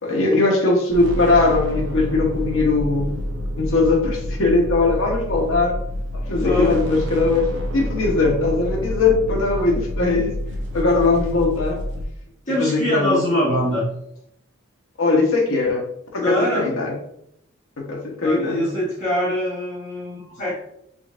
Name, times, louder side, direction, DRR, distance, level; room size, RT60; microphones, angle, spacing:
voice 1, 0.0-3.1 3.6-5.8 6.1-12.1 12.6-13.3 15.0-15.8 16.1-16.9 17.8-18.7, left 3 dB, 70° left, 0 dB, 0.9 m, -20 dB
sound 1, 0.9-12.1, equal, 60° right, 0.6 m, -28 dB
voice 2, 6.3-6.8 12.5-13.9 16.2-16.7 18.2-20.6, equal, 35° left, -9 dB, 1.2 m, -23 dB
3.7 x 3.5 x 2.4 m, 0.74 s
head